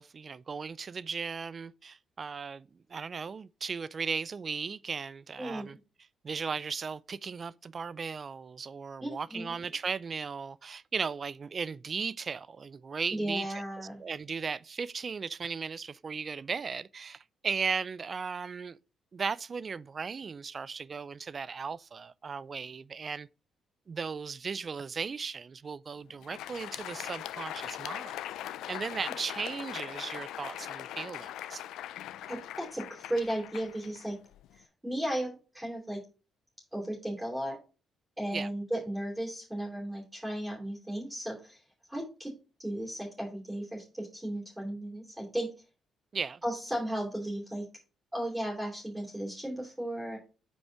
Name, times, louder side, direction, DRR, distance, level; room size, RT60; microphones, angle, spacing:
voice 1, 0.0-5.8 6.2-13.5 14.0-18.8 19.1-23.3 23.9-28.2 28.7-31.6 38.3-38.5 46.1-46.4, right 5 dB, 40° right, 0.3 m, -36 dB
voice 2, 5.4-5.8 9.0-9.6 13.1-14.0 32.3-34.2 34.5-36.0 36.7-37.6 38.2-41.6 41.9-42.3 42.6-45.5 46.4-47.6 48.1-50.2, right 1 dB, 10° right, 3.1 m, -35 dB
Crowd, 26.1-34.6, left 12 dB, 85° left, 0.3 m, -41 dB
5.3 x 4.8 x 5.7 m
cardioid pair, 90°, 0 cm